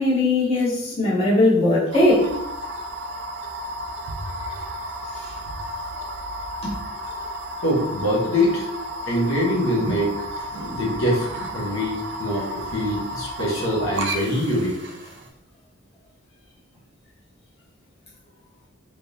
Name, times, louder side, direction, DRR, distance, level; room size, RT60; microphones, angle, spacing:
voice 1, 0.0-2.3 6.6-6.7, left 2 dB, 30° left, -8 dB, 1.1 m, -19 dB
sound 1, 1.9-15.3, equal, 55° right, 0.5 m, -33 dB
voice 2, 7.6-8.7 9.1-10.1 10.4-11.3 11.5-12.5 12.7-14.7, equal, 70° left, -4 dB, 1.0 m, -23 dB
3.4 x 3.0 x 2.6 m, 0.79 s
head